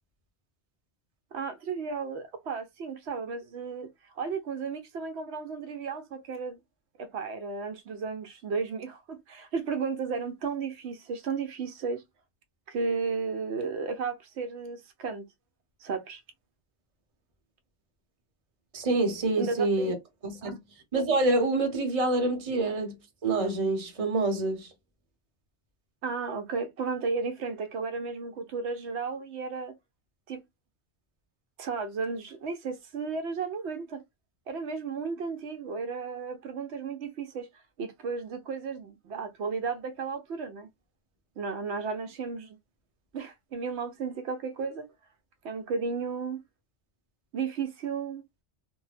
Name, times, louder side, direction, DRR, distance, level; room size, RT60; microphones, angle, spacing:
voice 1, 1.3-3.9 4.2-6.6 7.0-12.0 12.7-15.2 15.8-16.2 19.4-20.0 20.4-20.6 26.0-29.7 30.3-30.4 31.6-34.0 34.5-40.7 41.4-42.6 43.1-44.9 45.4-46.4 47.3-48.2, right 5 dB, 75° right, 0.9 m, -34 dB
voice 2, 18.7-19.9 20.2-20.6 20.9-23.0 23.2-24.7, right 2 dB, 35° right, 0.8 m, -26 dB
2.6 x 2.1 x 3.2 m
omnidirectional pair, 1.2 m